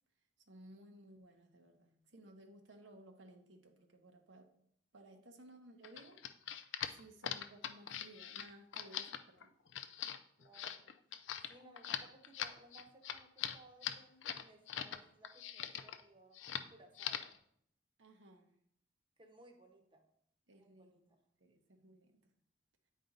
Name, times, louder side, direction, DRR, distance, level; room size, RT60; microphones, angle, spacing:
voice 1, 0.5-4.5 4.9-6.2 6.9-9.5 18.0-18.5 20.5-22.3, right 1 dB, 85° right, 4 dB, 1.0 m, -59 dB
sound 1, 5.8-15.0 15.2-16.0 16.3-16.7 17.0-17.4, left 9 dB, 90° left, 0.5 m, -42 dB
voice 2, 10.4-10.8 11.5-16.4 16.7-17.2 19.2-20.1 20.5-21.2, right 2 dB, 30° right, 4 dB, 0.9 m, -62 dB
9.2 x 4.6 x 3.9 m, 0.69 s
head